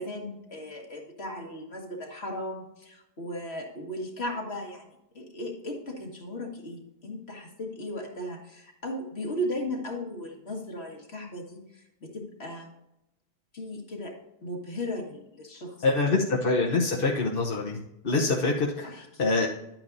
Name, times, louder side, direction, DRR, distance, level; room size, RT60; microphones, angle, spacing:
voice 1, 0.0-4.9 5.1-12.7 13.5-14.1 14.4-16.2 18.8-19.4, left 1 dB, 75° left, 1 dB, 2.1 m, -36 dB
voice 2, 15.8-17.8 18.0-18.9 19.2-19.5, left 3 dB, 60° left, -2 dB, 1.2 m, -25 dB
11.5 x 8.9 x 2.7 m, 0.87 s
omnidirectional pair, 1.1 m